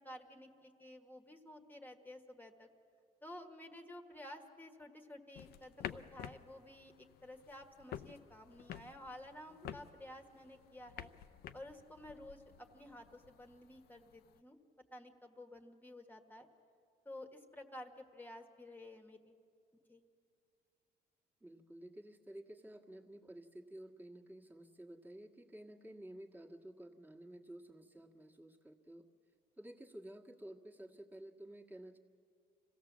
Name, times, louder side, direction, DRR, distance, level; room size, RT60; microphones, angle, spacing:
voice 1, 0.0-2.7 3.2-6.9 7.2-11.1 11.5-14.6 14.9-16.5 17.0-19.3 19.9-20.0, left 1 dB, 10° left, 4 dB, 1.4 m, -52 dB
sound 1, 5.3-14.4, left 10 dB, 70° left, 0.6 m, -51 dB
voice 2, 21.4-29.0 29.6-32.0, right 1 dB, 10° right, -1 dB, 1.7 m, -53 dB
26.0 x 16.5 x 7.3 m, 2.5 s
cardioid pair, 110°, 17 cm